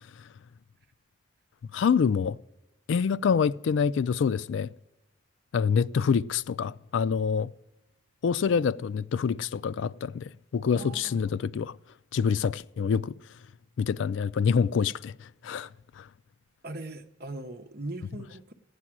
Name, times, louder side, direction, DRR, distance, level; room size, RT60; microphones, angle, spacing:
voice 1, 1.7-2.4 2.9-4.7 5.5-7.5 8.2-11.7 12.1-13.1 13.8-15.7 16.0-16.1, left 6 dB, 75° left, 0.3 m, -26 dB
voice 2, 10.7-11.4 16.6-18.5, right 2 dB, 50° right, 0.9 m, -40 dB
15.5 x 9.7 x 6.1 m
head